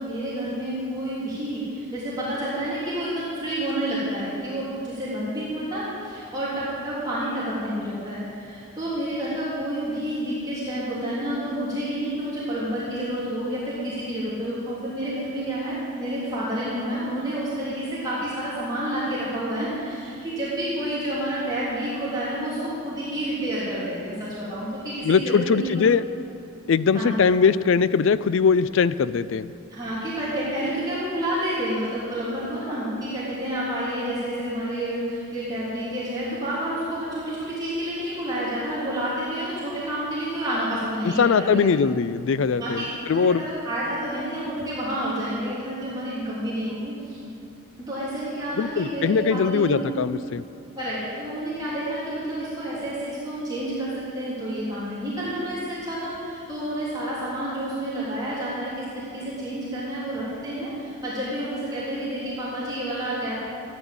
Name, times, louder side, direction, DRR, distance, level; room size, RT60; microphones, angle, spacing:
voice 1, 0.0-25.9 26.9-27.2 29.7-41.6 42.6-47.2 47.8-49.9 50.8-63.3, right 1 dB, 20° right, -10 dB, 3.2 m, -29 dB
voice 2, 25.0-26.0 26.7-29.5 41.0-43.4 48.6-50.4, left 5 dB, 65° left, 16 dB, 0.4 m, -21 dB
14.0 x 9.9 x 7.3 m, 2.5 s
head